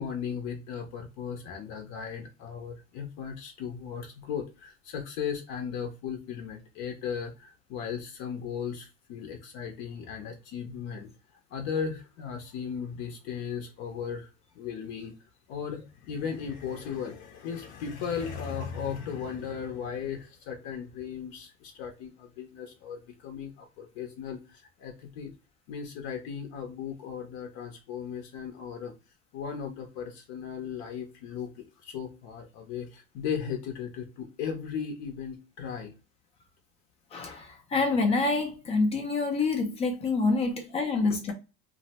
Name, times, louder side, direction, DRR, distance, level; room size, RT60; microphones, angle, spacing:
voice 1, 0.0-11.1 11.5-14.3 14.5-15.1 15.5-25.3 25.7-28.9 29.3-35.9 41.1-41.2, left 7 dB, 60° left, 0.6 m, -36 dB
voice 2, 37.1-41.3, left 3 dB, 20° left, 0.3 m, -27 dB
2.6 x 2.0 x 3.9 m
cardioid pair, 175°, 32 cm